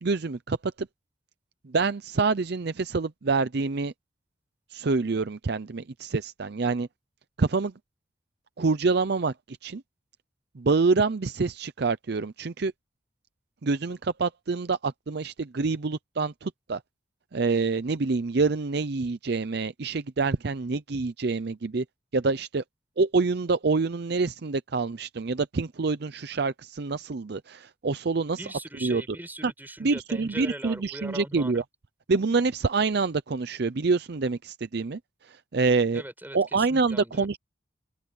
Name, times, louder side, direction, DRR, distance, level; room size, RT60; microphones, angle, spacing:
voice 1, 0.0-0.9 1.6-3.9 4.7-6.9 7.4-7.7 8.6-9.8 10.5-12.7 13.6-16.8 17.3-21.8 22.1-22.6 23.0-28.5 28.8-29.0 29.4-29.5 29.8-31.6 32.1-36.0 36.3-37.4, right 4 dB, 55° right, 0.6 m, -26 dB
voice 2, 28.4-31.6 35.9-37.3, right 1 dB, 10° right, 7.7 m, -40 dB
open air
head